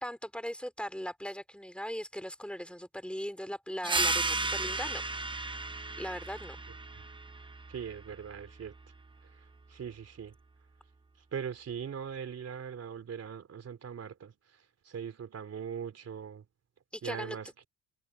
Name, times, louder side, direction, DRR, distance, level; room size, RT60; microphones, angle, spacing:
voice 1, 0.0-5.0 5.4-5.6 6.0-6.6 16.9-17.4, equal, 5° left, 3.6 m, -39 dB
sound 1, 3.8-9.0, right 2 dB, 15° right, 1.0 m, -34 dB
voice 2, 7.7-8.7 9.7-10.4 11.3-14.3 14.9-16.5 17.0-17.6, right 7 dB, 45° right, 3.6 m, -40 dB
cardioid pair, 90°, 33 cm